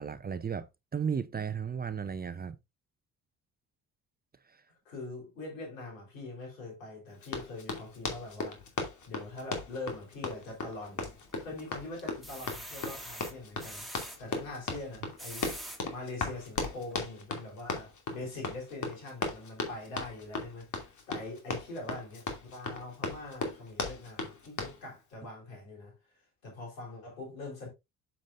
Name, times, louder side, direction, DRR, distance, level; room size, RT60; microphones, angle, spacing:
voice 1, 0.0-2.6 4.5-4.6, right 7 dB, 25° right, 0.7 m, -35 dB
voice 2, 4.9-8.6 9.1-25.9 26.4-27.7, left 2 dB, 85° left, 4.0 m, -43 dB
Run, 7.2-24.8, left 4 dB, 50° left, 2.6 m, -37 dB
sound 1, 10.9-11.5 12.0-14.2 15.0-15.8 16.4-16.5 16.8-16.9, right 1 dB, ahead, 2.5 m, -44 dB
7.3 x 7.0 x 2.6 m
hypercardioid pair, 55°, 39 cm